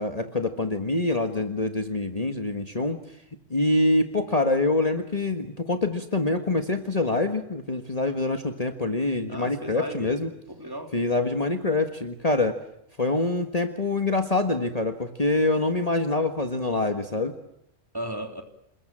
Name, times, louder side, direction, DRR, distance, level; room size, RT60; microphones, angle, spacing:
voice 1, 0.0-3.0 3.5-10.3 10.9-12.6 13.0-17.3, left 2 dB, 30° left, 6 dB, 1.7 m, -25 dB
voice 2, 9.3-10.1 10.5-10.9 17.9-18.4, equal, 15° right, 4 dB, 3.5 m, -35 dB
29.0 x 21.5 x 7.5 m, 0.77 s
omnidirectional pair, 1.3 m